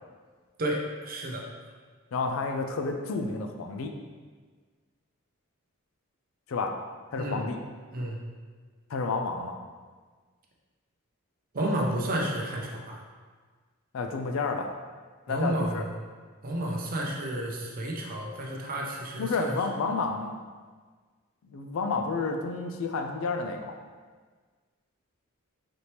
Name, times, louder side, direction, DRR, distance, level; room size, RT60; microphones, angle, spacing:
voice 1, 0.6-1.4 7.2-7.4 7.9-8.2 11.5-13.0 15.3-15.9 16.4-19.6, right 1 dB, 45° right, 0 dB, 0.6 m, -31 dB
voice 2, 2.1-3.9 6.5-6.7 7.1-7.6 8.9-9.6 13.9-14.7 15.3-15.8 19.2-20.4 21.4-23.7, left 4 dB, 70° left, 5 dB, 0.4 m, -30 dB
4.1 x 2.9 x 3.3 m, 1.5 s
head